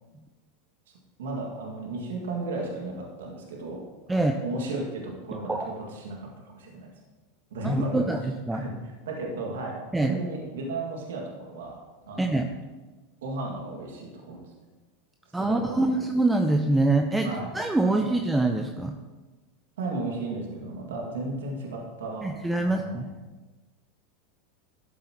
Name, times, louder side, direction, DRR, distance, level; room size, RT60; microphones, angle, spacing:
voice 1, 1.2-6.3 6.5-6.9 7.5-8.0 8.5-8.7 9.1-11.8 12.1-12.4 13.2-14.5 15.4-15.9 17.2-17.5 18.0-18.1 19.8-22.3 22.6-23.1, right 2 dB, 80° right, -1 dB, 2.0 m, -34 dB
voice 2, 7.6-8.6 9.9-10.2 12.2-12.5 15.3-17.3 17.5-19.0 22.2-23.1, right 2 dB, 10° right, 4 dB, 0.6 m, -25 dB
12.5 x 7.6 x 3.0 m, 1.2 s
hypercardioid pair, 100°, 0 cm